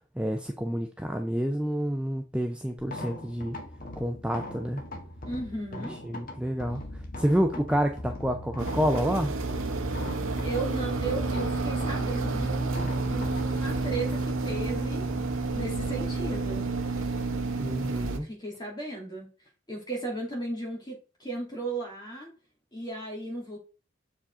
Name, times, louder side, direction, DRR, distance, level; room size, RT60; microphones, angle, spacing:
voice 1, 0.2-3.6 4.0-4.8 6.1-6.8 7.2-9.3 17.6-18.3, equal, 5° right, 0.4 m, -28 dB
sound 1, 2.8-17.0, left 1 dB, 45° left, 1.3 m, -41 dB
voice 2, 5.3-6.0 10.4-15.1 15.5-17.0 18.2-19.3 19.7-22.3 22.7-23.6, right 2 dB, 20° left, 2.9 m, -35 dB
sound 2, 8.6-18.2, right 3 dB, 80° right, 0.9 m, -30 dB
7.0 x 4.9 x 3.7 m
head